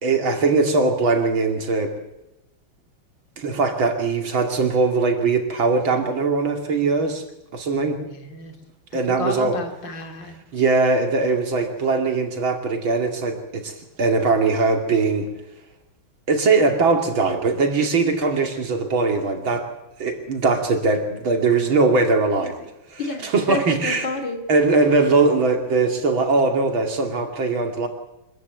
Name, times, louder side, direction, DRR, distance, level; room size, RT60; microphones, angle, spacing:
voice 1, 0.0-1.9 3.4-7.2 7.5-8.0 8.9-9.6 10.5-15.3 16.3-19.7 20.0-22.6 22.9-24.1 24.5-27.9, right 3 dB, 80° right, 4 dB, 3.4 m, -21 dB
voice 2, 8.0-8.5 9.2-10.4 23.0-24.4, left 2 dB, 65° left, 5 dB, 3.3 m, -30 dB
25.0 x 15.0 x 9.4 m, 0.94 s
omnidirectional pair, 2.2 m